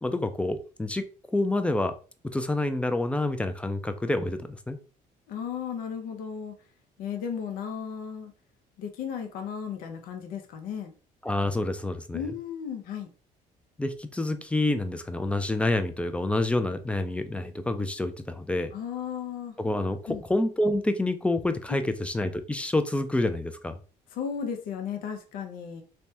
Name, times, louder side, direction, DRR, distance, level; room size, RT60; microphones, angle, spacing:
voice 1, 0.0-1.9 2.2-4.8 11.2-12.2 13.8-18.7 19.6-23.8, left 2 dB, 10° left, 9 dB, 0.4 m, -28 dB
voice 2, 5.3-6.5 7.0-8.3 8.8-10.9 12.1-13.1 18.7-19.5 20.1-20.2 24.1-25.8, left 7 dB, 80° left, 4 dB, 0.6 m, -35 dB
3.3 x 2.1 x 2.7 m, 0.37 s
cardioid pair, 90°, 15 cm